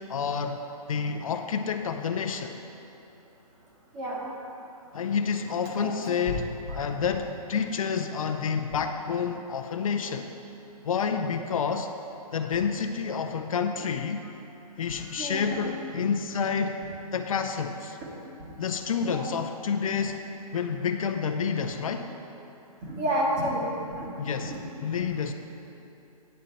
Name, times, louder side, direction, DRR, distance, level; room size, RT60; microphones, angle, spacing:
voice 1, 0.1-0.6 0.9-2.6 4.9-10.3 10.8-11.9 12.3-14.2 14.8-16.8 17.1-18.0 18.6-20.2 20.5-22.1 24.2-24.5 24.8-25.3, left 6 dB, 65° left, 6 dB, 0.5 m, -29 dB
voice 2, 14.9-15.6 18.4-18.5 19.0-19.3 22.8-24.1 24.4-24.6 25.0-25.1, equal, 20° right, -5 dB, 1.4 m, -30 dB
10.0 x 4.4 x 5.3 m, 3.0 s
hypercardioid pair, 165°, 19 cm